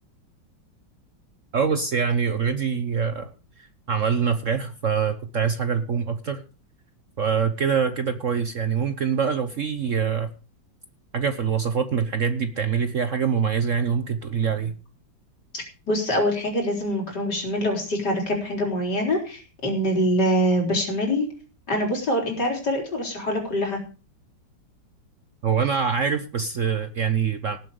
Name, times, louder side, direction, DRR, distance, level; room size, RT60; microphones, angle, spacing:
voice 1, 1.5-6.4 7.2-10.3 11.1-14.7 25.4-27.6, right 6 dB, 50° right, 10 dB, 1.1 m, -24 dB
voice 2, 15.5-21.3 21.7-23.8, equal, 60° left, 1 dB, 4.7 m, -24 dB
18.0 x 7.6 x 5.1 m, 0.35 s
omnidirectional pair, 2.0 m